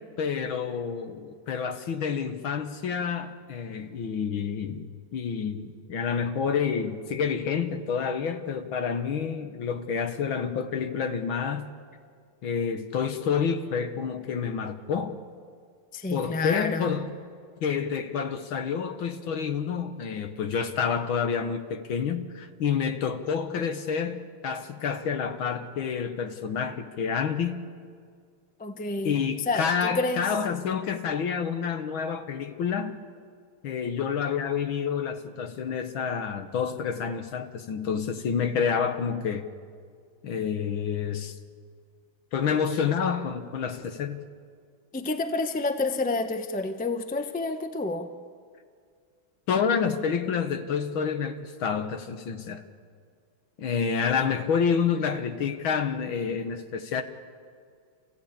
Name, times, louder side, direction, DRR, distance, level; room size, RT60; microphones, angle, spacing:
voice 1, 0.2-11.7 12.4-15.2 16.1-17.1 17.6-27.7 29.0-33.0 33.6-39.5 40.2-41.4 42.3-44.3 49.5-52.6 53.6-57.0, left 6 dB, 70° left, 8 dB, 2.0 m, -28 dB
voice 2, 15.9-16.9 28.6-29.1 29.5-30.2 43.0-43.1 44.9-48.1, left 3 dB, 10° left, 7 dB, 0.4 m, -29 dB
28.0 x 15.5 x 8.6 m, 2.1 s
omnidirectional pair, 2.3 m